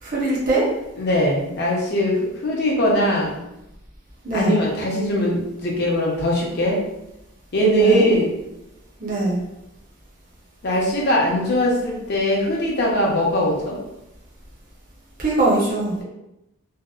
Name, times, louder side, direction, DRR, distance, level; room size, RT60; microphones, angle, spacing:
voice 1, 0.0-0.7 4.2-4.6 7.8-8.1 9.0-9.4 15.2-15.9, right 2 dB, 40° right, -6 dB, 0.6 m, -21 dB
voice 2, 1.0-3.4 4.3-6.8 7.5-8.3 10.6-13.8, equal, 50° left, -2 dB, 0.5 m, -21 dB
2.6 x 2.0 x 2.3 m, 0.88 s
head